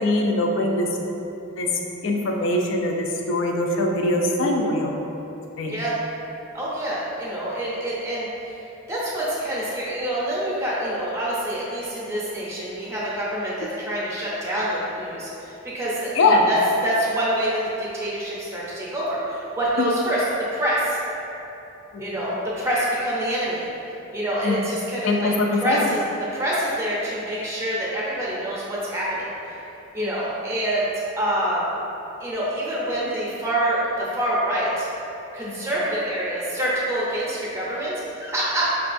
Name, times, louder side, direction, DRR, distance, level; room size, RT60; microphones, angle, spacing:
voice 1, 0.0-0.9 1.6-1.7 2.0-4.9 5.6-5.7 16.1-16.4 21.9-22.2 24.4-24.6 25.0-25.9 30.0-30.2 35.4-35.7, left 2 dB, 65° left, 1 dB, 0.4 m, -22 dB
voice 2, 6.5-8.6 8.9-16.6 16.8-20.2 20.5-21.0 22.0-23.7 24.1-26.0 26.3-29.3 29.9-30.9 31.2-31.6 32.2-34.9 35.3-38.8, right 1 dB, 15° right, -7 dB, 0.5 m, -26 dB
5.1 x 2.3 x 2.5 m, 3.0 s
head